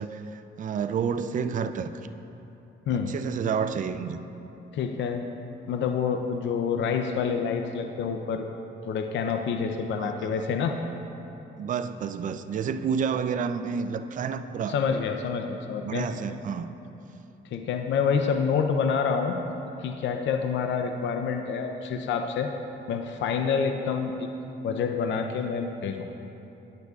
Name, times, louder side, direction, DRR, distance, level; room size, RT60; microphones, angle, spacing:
voice 1, 0.0-1.9 3.1-4.2 10.0-10.4 11.6-14.7 15.8-16.7, right 6 dB, 40° right, 10 dB, 0.4 m, -30 dB
voice 2, 4.7-5.2 5.7-8.5 8.8-10.8 14.7-16.1 17.5-19.3 19.8-22.5 22.9-24.3 24.6-26.1, left 6 dB, 70° left, 5 dB, 0.6 m, -27 dB
13.5 x 9.5 x 2.4 m, 2.9 s
cardioid pair, 90°, 20 cm